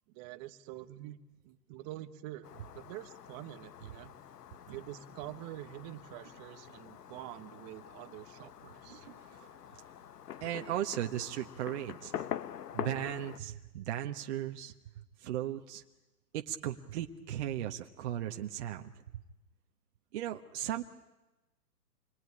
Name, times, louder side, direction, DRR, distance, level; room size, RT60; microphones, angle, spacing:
voice 1, 0.1-1.2 1.4-4.1 4.7-9.1, right 15 dB, 25° right, 11 dB, 1.3 m, -46 dB
Fireworks, 2.4-13.4, left 10 dB, 70° left, 1.2 m, -45 dB
voice 2, 8.9-9.5 10.4-12.3 12.7-14.7 15.2-15.8 16.3-18.9 20.1-20.8, right 12 dB, 45° right, 4 dB, 1.5 m, -37 dB
27.5 x 22.0 x 9.9 m, 1.1 s
hypercardioid pair, 145°, 49 cm